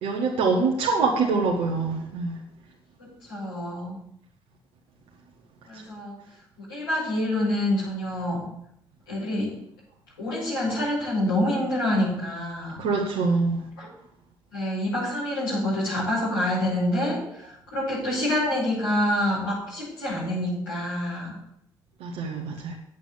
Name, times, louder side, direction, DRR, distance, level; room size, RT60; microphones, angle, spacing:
voice 1, 0.0-2.4 5.7-5.8 12.8-13.6 22.0-22.8, right 4 dB, 65° right, -2 dB, 1.5 m, -25 dB
voice 2, 3.3-3.9 5.6-6.2 6.6-8.4 9.1-9.5 10.2-12.8 13.8-13.9 14.5-21.3, left 1 dB, 80° left, -11 dB, 5.8 m, -27 dB
9.1 x 8.2 x 7.3 m, 0.74 s
figure-of-eight pair, 40°, 12 cm